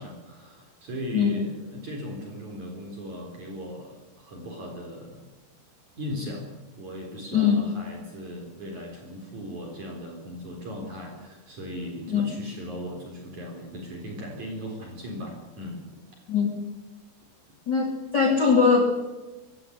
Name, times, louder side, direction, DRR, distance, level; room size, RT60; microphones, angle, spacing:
voice 1, 0.0-5.3 5.9-15.8, equal, 45° right, 1 dB, 5.1 m, -38 dB
voice 2, 1.1-1.4 7.3-7.6 12.1-12.3 16.3-16.5 17.7-18.8, left 6 dB, 30° left, 1 dB, 2.7 m, -21 dB
22.5 x 16.5 x 10.0 m, 1.2 s
omnidirectional pair, 4.8 m